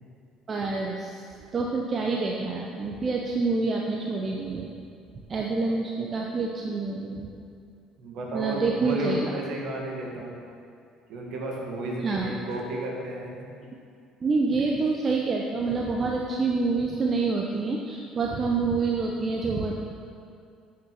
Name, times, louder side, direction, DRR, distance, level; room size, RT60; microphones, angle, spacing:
voice 1, 0.5-1.2 1.5-4.7 5.3-7.3 8.3-9.2 12.0-12.3 14.2-19.7, right 3 dB, 35° right, 0 dB, 0.9 m, -27 dB
voice 2, 8.0-10.4 11.1-13.3, right 1 dB, 55° right, -1 dB, 1.9 m, -32 dB
9.1 x 6.8 x 5.8 m, 2.4 s
figure-of-eight pair, 55°, 0 cm